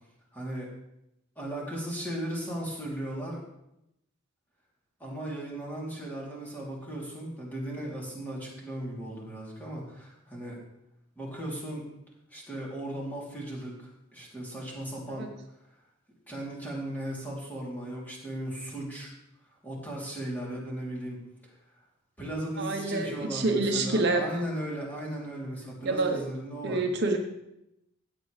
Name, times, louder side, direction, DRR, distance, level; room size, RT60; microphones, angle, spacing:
voice 1, 0.3-0.7 1.4-3.4 5.0-10.6 11.1-11.9 12.3-15.3 16.3-19.1 19.6-21.2 22.2-26.8, right 1 dB, 10° left, -5 dB, 3.1 m, -36 dB
voice 2, 22.6-24.3 25.8-26.2 26.6-27.2, right 2 dB, 55° right, 3 dB, 0.9 m, -27 dB
15.5 x 8.3 x 3.3 m, 0.84 s
head